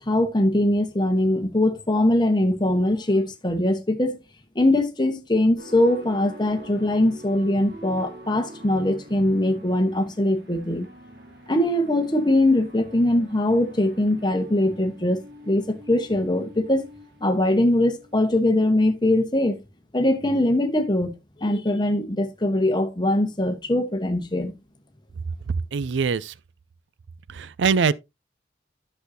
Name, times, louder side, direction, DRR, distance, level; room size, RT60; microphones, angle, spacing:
voice 1, 0.0-4.2 4.5-10.9 11.5-16.9 17.2-19.6 19.9-21.1 21.4-24.5, left 1 dB, 25° left, 1.1 m, -22 dB
sound 1, 5.6-18.9, right 1 dB, 65° right, 1.9 m, -45 dB
voice 2, 25.5-26.3 27.3-27.9, right 5 dB, 90° right, 0.4 m, -23 dB
10.5 x 6.4 x 2.7 m
head